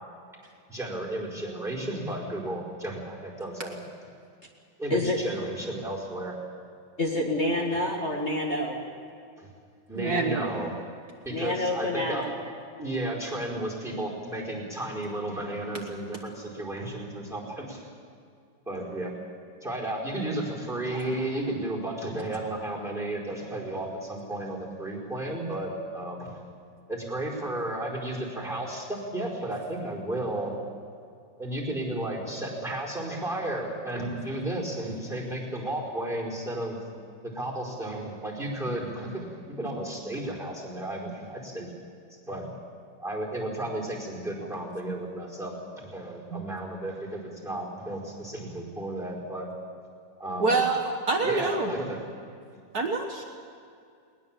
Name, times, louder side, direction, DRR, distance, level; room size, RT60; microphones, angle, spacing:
voice 1, 0.7-3.8 4.8-6.3 9.4-9.5 9.9-10.7 11.2-12.3 12.8-17.9 18.7-19.1 19.6-26.4 26.9-30.5 31.4-36.8 37.2-41.7 42.3-42.5 43.0-49.5 50.2-50.6 51.2-52.0, right 1 dB, ahead, -4 dB, 4.4 m, -33 dB
voice 2, 4.9-5.2 7.0-8.8 11.3-12.3, left 1 dB, 35° left, -1 dB, 2.1 m, -27 dB
voice 3, 10.0-10.5 21.2-21.3 46.3-46.4 50.4-51.7 52.7-53.2, right 3 dB, 55° right, 3 dB, 1.7 m, -26 dB
20.5 x 20.0 x 7.4 m, 2.4 s
omnidirectional pair, 2.1 m